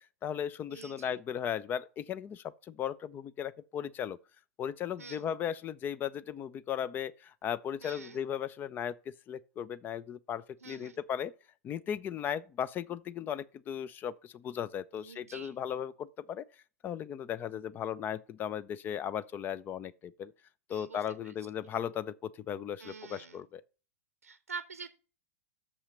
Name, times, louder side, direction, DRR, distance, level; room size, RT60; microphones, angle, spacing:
voice 1, 0.0-4.2 4.6-11.3 11.6-16.4 16.8-20.3 20.7-23.6, left 9 dB, 25° left, 0.5 m, -37 dB
voice 2, 0.7-1.2 5.0-5.3 7.8-8.2 10.6-11.0 15.0-15.6 20.7-21.3 22.8-23.4 24.2-24.9, right 5 dB, 75° right, 0.6 m, -46 dB
6.7 x 5.7 x 6.8 m
figure-of-eight pair, 95°, 8 cm